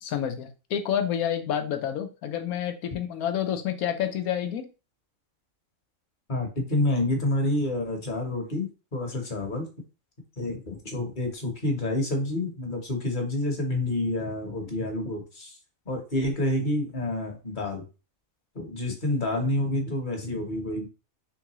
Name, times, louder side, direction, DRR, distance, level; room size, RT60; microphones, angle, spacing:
voice 1, 0.0-4.7, left 9 dB, 85° left, 7 dB, 1.1 m, -29 dB
voice 2, 6.3-9.7 10.4-15.6 15.9-17.8 18.5-20.9, left 1 dB, 35° left, 2 dB, 1.1 m, -28 dB
3.7 x 3.5 x 3.0 m, 0.32 s
omnidirectional pair, 1.5 m